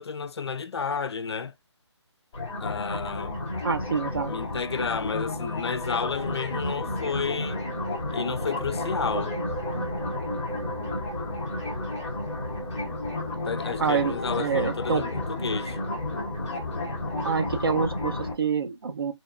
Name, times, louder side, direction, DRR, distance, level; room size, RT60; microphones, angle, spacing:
voice 1, 0.0-1.5 2.6-3.4 4.1-7.6 8.0-9.4 13.3-15.8, left 5 dB, 60° left, 0.4 m, -31 dB
sound 1, 2.3-18.3, left 2 dB, 10° left, 0.8 m, -32 dB
voice 2, 3.6-4.3 13.8-15.0 17.2-19.1, right 6 dB, 50° right, 0.5 m, -27 dB
sound 2, 7.0-18.4, right 3 dB, 80° right, 0.9 m, -42 dB
2.8 x 2.1 x 2.4 m
hypercardioid pair, 170°, 15 cm